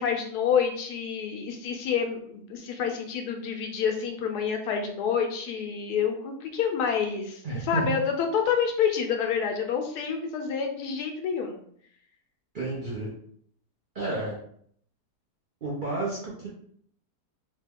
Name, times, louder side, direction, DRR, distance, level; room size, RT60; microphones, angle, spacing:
voice 1, 0.0-11.6, left 7 dB, 80° left, 4 dB, 1.1 m, -28 dB
voice 2, 7.4-7.9 12.5-13.1 13.9-14.4 15.6-16.5, right 2 dB, 50° right, -5 dB, 0.6 m, -31 dB
3.1 x 2.2 x 3.5 m, 0.62 s
omnidirectional pair, 1.7 m